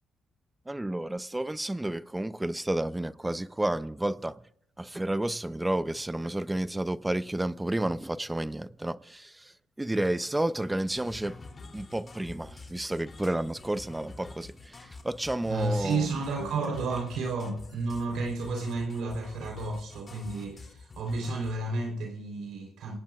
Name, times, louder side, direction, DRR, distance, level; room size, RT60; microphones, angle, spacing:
voice 1, 0.7-4.4 4.8-9.5 9.8-11.4 11.7-16.1, right 1 dB, 10° right, 0.8 m, -31 dB
sound 1, 10.9-21.6, left 3 dB, 35° left, 3.0 m, -48 dB
voice 2, 15.5-22.9, right 3 dB, 75° right, 3.7 m, -32 dB
28.5 x 18.5 x 2.4 m
supercardioid pair, 65°, 0 cm